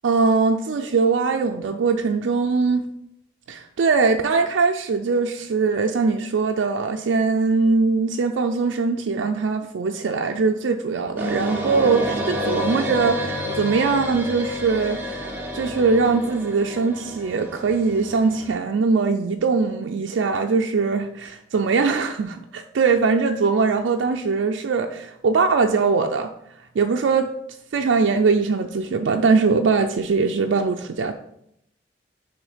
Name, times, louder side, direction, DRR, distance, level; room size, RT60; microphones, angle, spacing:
voice 1, 0.0-2.9 3.5-15.2 15.5-26.3 26.8-27.3 27.7-31.1, right 4 dB, 85° right, 4 dB, 0.4 m, -21 dB
sound 1, 11.2-18.5, equal, 10° right, 0.7 m, -29 dB
6.2 x 3.3 x 5.0 m, 0.75 s
head